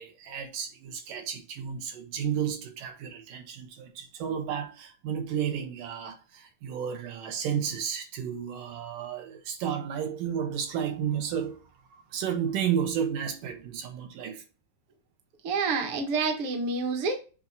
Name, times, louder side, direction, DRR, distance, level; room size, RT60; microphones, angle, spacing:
voice 1, 0.0-14.4, right 8 dB, 80° right, 2.8 m, -32 dB
voice 2, 15.4-17.2, right 4 dB, 50° right, 1.9 m, -28 dB
7.8 x 2.9 x 5.3 m
omnidirectional pair, 3.8 m